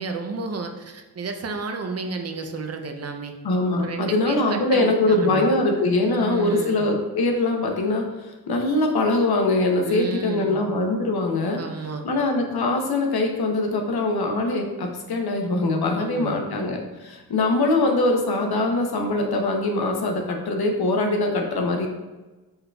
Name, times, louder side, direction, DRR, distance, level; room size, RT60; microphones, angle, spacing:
voice 1, 0.0-3.3 3.8-5.5 6.1-6.9 9.8-10.6 11.6-12.1 16.0-16.5, right 4 dB, 45° right, 5 dB, 0.4 m, -32 dB
voice 2, 3.4-11.6 12.0-21.9, left 2 dB, 75° left, 3 dB, 0.7 m, -22 dB
5.4 x 3.7 x 2.2 m, 1.2 s
wide cardioid pair, 140°, 37 cm